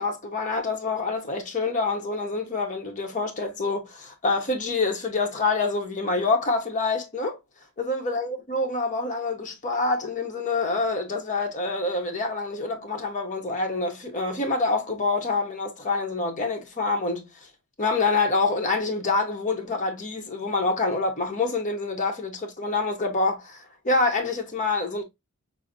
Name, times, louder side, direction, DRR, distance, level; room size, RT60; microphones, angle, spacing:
voice 1, 0.0-7.4 7.8-17.2 17.8-25.0, left 3 dB, 35° left, 0.9 m, -26 dB
5.7 x 2.0 x 2.4 m
head